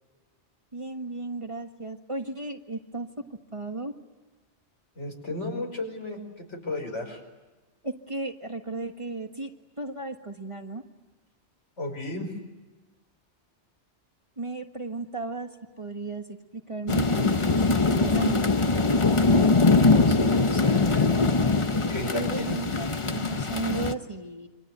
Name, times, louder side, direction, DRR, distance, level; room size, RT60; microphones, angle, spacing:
voice 1, 0.7-3.1 3.5-3.9 7.8-9.5 9.8-10.8 14.4-15.5 15.8-16.4 16.7-18.4 21.8-24.5, right 2 dB, 25° right, 4 dB, 1.6 m, -34 dB
voice 2, 5.0-7.2 11.8-12.3 19.8-21.1 21.7-22.6, left 1 dB, 80° left, 2 dB, 5.9 m, -34 dB
sound 1, 16.9-23.9, left 3 dB, 30° left, 1.0 m, -22 dB
28.5 x 25.5 x 8.1 m, 1.2 s
omnidirectional pair, 1.2 m